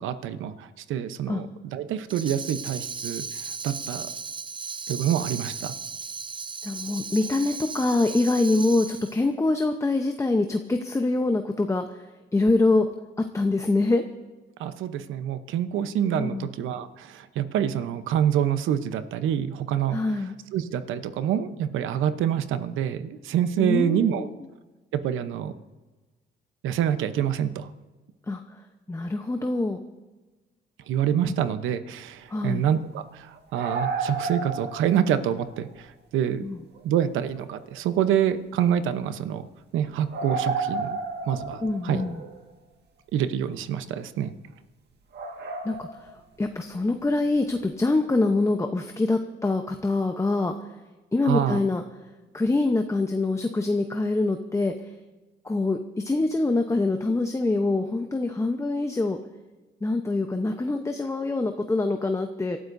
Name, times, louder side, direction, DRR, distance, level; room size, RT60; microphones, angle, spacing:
voice 1, 0.0-1.5 1.7-3.2 3.6-4.0 4.9-5.7 14.6-20.0 20.5-24.2 24.9-25.5 26.6-27.7 30.9-33.3 33.5-35.7 36.1-36.4 36.8-39.4 39.7-41.0 41.3-42.0 43.1-44.3 51.3-51.6, right 9 dB, 85° right, 11 dB, 0.9 m, -26 dB
Tambourine, 2.1-9.2, right 5 dB, 25° right, 0.5 m, -36 dB
voice 2, 6.6-12.0 12.3-12.9 13.2-14.0 16.1-16.5 19.9-20.3 23.6-24.3 28.3-28.4 28.9-29.8 31.3-31.4 32.3-32.7 36.4-36.6 41.6-42.2 45.6-46.1 46.4-50.5 51.1-51.8 52.3-54.7 55.4-59.2 59.8-62.6, left 2 dB, 15° left, 5 dB, 0.8 m, -25 dB
sound 1, 33.4-35.2 35.5-35.7 36.8-36.9 37.4-37.5 37.7-37.8 40.1-42.3 45.1-46.1 47.6-47.7, right 4 dB, 60° right, 1.7 m, -32 dB
27.0 x 12.5 x 2.7 m, 1.2 s
cardioid pair, 90°, 20 cm